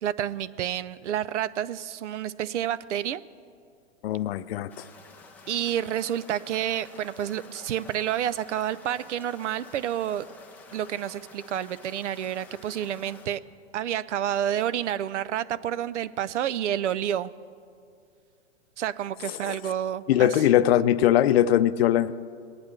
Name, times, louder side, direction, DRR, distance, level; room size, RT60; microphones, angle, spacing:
voice 1, 0.0-3.2 5.5-10.3 10.7-13.4 13.7-17.3 18.8-20.6, right 10 dB, 85° right, 17 dB, 0.6 m, -29 dB
voice 2, 4.0-4.9 19.4-19.6 20.1-22.1, left 12 dB, 60° left, 14 dB, 0.6 m, -21 dB
sound 1, 4.7-13.3, left 3 dB, 5° left, 0.3 m, -50 dB
20.0 x 10.0 x 3.2 m, 2.3 s
hypercardioid pair, 135°, 35 cm